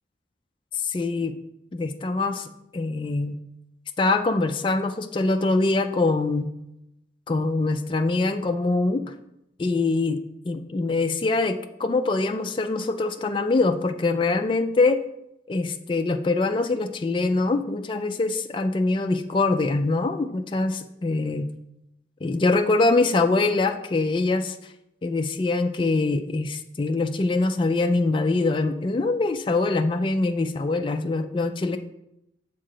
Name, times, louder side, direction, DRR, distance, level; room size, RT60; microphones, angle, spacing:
voice 1, 0.7-1.4 1.7-3.4 4.0-6.5 7.3-9.0 9.6-10.2 10.5-15.0 15.5-21.5 22.2-24.6 25.0-31.8, left 3 dB, 25° left, 5 dB, 0.3 m, -24 dB
7.5 x 3.7 x 6.6 m, 0.86 s
head